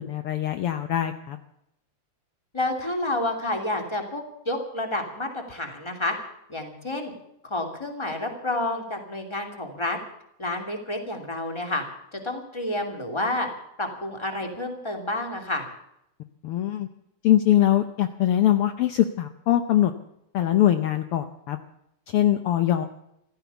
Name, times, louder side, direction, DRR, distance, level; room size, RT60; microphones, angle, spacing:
voice 1, 0.0-1.4 16.4-16.9 17.2-19.9 20.3-21.6 22.1-22.9, left 12 dB, 75° left, 8 dB, 1.3 m, -22 dB
voice 2, 2.5-6.2 6.5-7.1 7.4-10.0 10.4-11.8 12.1-13.5 13.8-15.7, left 2 dB, 10° left, 4 dB, 2.5 m, -29 dB
15.5 x 13.5 x 7.0 m, 0.79 s
omnidirectional pair, 3.6 m